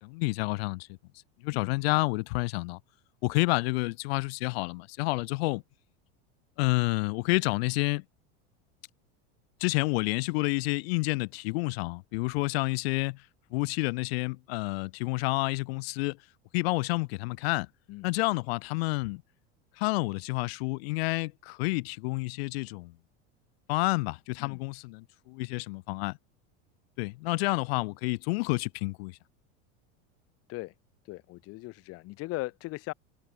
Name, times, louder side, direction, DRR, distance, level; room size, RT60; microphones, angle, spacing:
voice 1, 0.0-1.0 1.4-2.8 3.2-5.6 6.6-8.0 9.6-13.2 13.5-16.2 16.5-17.7 18.0-19.2 19.8-22.9 23.7-26.2 27.0-29.2, left 25 dB, 65° left, 0.5 m, -29 dB
voice 2, 31.0-32.9, left 21 dB, 45° left, 4.9 m, -38 dB
supercardioid pair, 155°, 33 cm